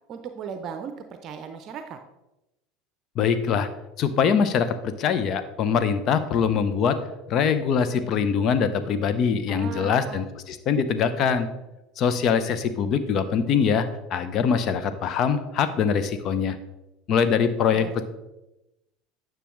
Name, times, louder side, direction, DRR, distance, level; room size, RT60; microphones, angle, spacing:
voice 1, 0.1-2.0 9.5-10.2 17.7-18.0, right 7 dB, 45° right, 7 dB, 0.6 m, -37 dB
voice 2, 3.2-3.7 4.0-7.0 7.3-11.5 12.0-13.9 14.1-16.6 17.1-18.0, left 6 dB, 45° left, 11 dB, 0.7 m, -23 dB
9.9 x 6.1 x 3.1 m, 0.95 s
hypercardioid pair, 75°, 0 cm